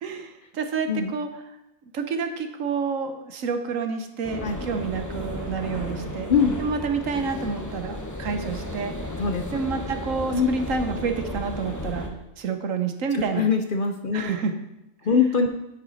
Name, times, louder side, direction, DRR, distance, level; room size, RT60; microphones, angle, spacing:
voice 1, 0.0-1.3 1.9-6.3 6.6-8.9 9.5-12.1 12.4-13.5 14.1-14.5, right 5 dB, 75° right, 7 dB, 1.3 m, -29 dB
sound 1, 4.2-12.1, left 1 dB, 15° left, 1.1 m, -34 dB
voice 2, 6.3-6.6 9.2-9.5 10.3-10.5 13.1-14.4 15.1-15.5, left 6 dB, 50° left, 6 dB, 0.7 m, -22 dB
9.3 x 8.9 x 4.1 m, 0.90 s
omnidirectional pair, 1.4 m